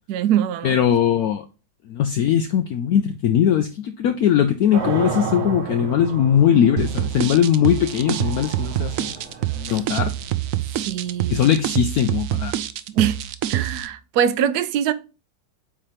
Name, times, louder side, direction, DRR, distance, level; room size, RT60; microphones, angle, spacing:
voice 1, 0.1-0.8 9.7-9.8 10.9-11.5 12.9-13.2 13.5-14.9, right 9 dB, 70° right, 1.0 m, -22 dB
voice 2, 0.6-1.4 1.9-9.1 9.5-10.1 11.3-12.5, left 9 dB, 70° left, 0.9 m, -20 dB
sound 1, 4.7-11.6, right 4 dB, 45° right, 1.0 m, -33 dB
sound 2, 6.8-13.9, right 13 dB, 85° right, 0.7 m, -26 dB
8.5 x 2.9 x 5.0 m
omnidirectional pair, 2.0 m